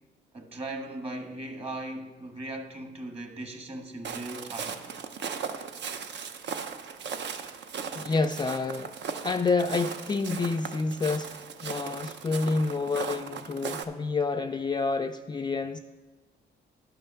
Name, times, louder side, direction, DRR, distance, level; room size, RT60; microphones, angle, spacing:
voice 1, 0.3-4.8, right 2 dB, 30° right, 1.5 m, -38 dB
Walk footsteps, 4.0-13.8, right 6 dB, 60° right, 0.7 m, -37 dB
voice 2, 7.9-8.9 9.2-11.3 11.6-15.8, left 4 dB, 20° left, 0.3 m, -28 dB
11.5 x 5.5 x 5.7 m
cardioid pair, 90°, 20 cm